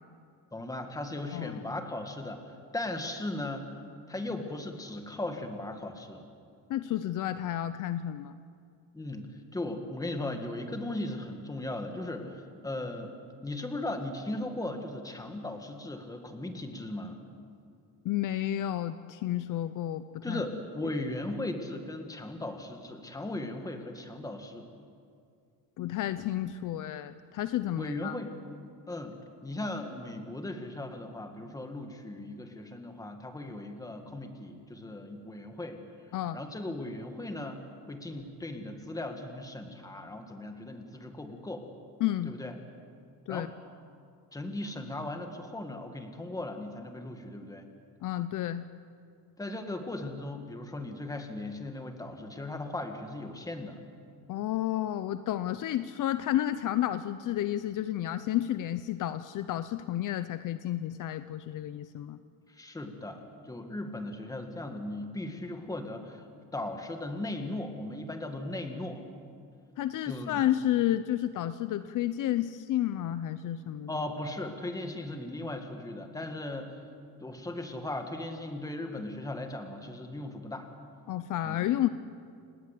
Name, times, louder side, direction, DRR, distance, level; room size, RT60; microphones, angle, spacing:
voice 1, 0.5-2.4 2.7-3.7 4.1-6.3 8.9-13.2 13.4-17.2 20.2-24.7 27.7-28.3 28.9-35.8 36.1-37.6 37.9-41.7 42.2-42.5 43.3-43.5 44.3-47.7 49.4-53.8 62.5-66.2 66.5-69.0 70.1-70.4 73.9-76.9 77.2-80.7 81.4-81.6, left 2 dB, 10° left, 5 dB, 1.9 m, -37 dB
voice 2, 6.7-8.3 18.0-20.4 25.8-28.2 36.1-36.4 42.0-42.3 43.3-43.5 48.0-48.7 54.3-62.2 69.8-73.9 81.1-81.9, left 12 dB, 55° left, 12 dB, 0.7 m, -31 dB
29.0 x 19.5 x 8.4 m, 2.3 s
cardioid pair, 175°, 36 cm